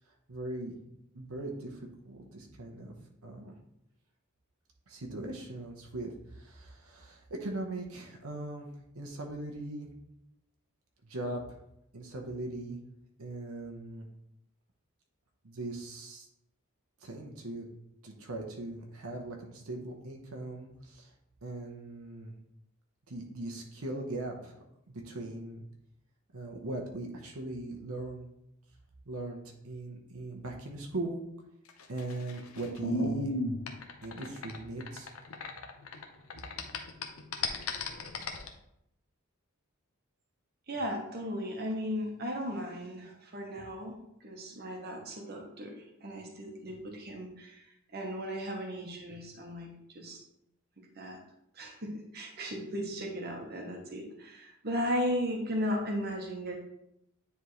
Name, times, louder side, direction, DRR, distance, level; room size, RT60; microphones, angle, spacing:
voice 1, 0.3-0.8 1.1-2.9 3.2-3.6 4.9-9.9 11.0-11.4 11.9-12.8 13.2-14.1 15.4-16.3 17.0-17.7 18.0-21.1 21.4-22.3 23.1-24.6 24.9-25.6 26.3-28.3 29.1-31.2 31.9-33.3 34.0-35.1, right 2 dB, 80° right, 1 dB, 1.0 m, -39 dB
sound 1, 31.7-36.0 36.3-38.5, left 2 dB, 80° left, 0.8 m, -35 dB
voice 2, 40.7-47.6 47.9-50.2 50.9-51.2 51.5-56.6, equal, 45° right, 1 dB, 1.1 m, -36 dB
9.5 x 3.5 x 3.1 m, 0.80 s
head